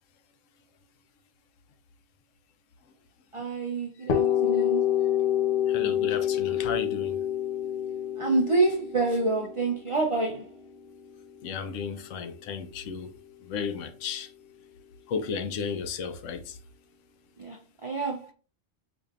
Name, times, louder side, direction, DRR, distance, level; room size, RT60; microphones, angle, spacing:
voice 1, 3.3-4.9 8.2-10.5 17.4-18.3, right 3 dB, 60° right, 0.3 m, -27 dB
sound 1, 4.1-11.8, left 10 dB, 55° left, 0.7 m, -27 dB
voice 2, 5.7-7.2 11.4-13.1 13.4-14.3 15.1-16.6, left 6 dB, 80° left, 1.0 m, -33 dB
4.8 x 2.6 x 2.4 m
omnidirectional pair, 1.3 m